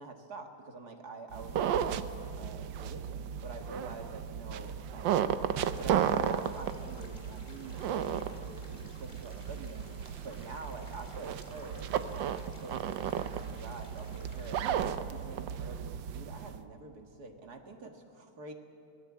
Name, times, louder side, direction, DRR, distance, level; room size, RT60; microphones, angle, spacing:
voice 1, 0.0-5.4 5.7-9.9 10.2-18.5, right 3 dB, 55° right, 4 dB, 2.3 m, -47 dB
sound 1, 1.3-16.6, right 9 dB, 75° right, 1.5 m, -34 dB
sound 2, 5.6-14.7, left 2 dB, 20° left, 2.0 m, -57 dB
25.5 x 19.5 x 8.6 m, 2.6 s
omnidirectional pair, 2.0 m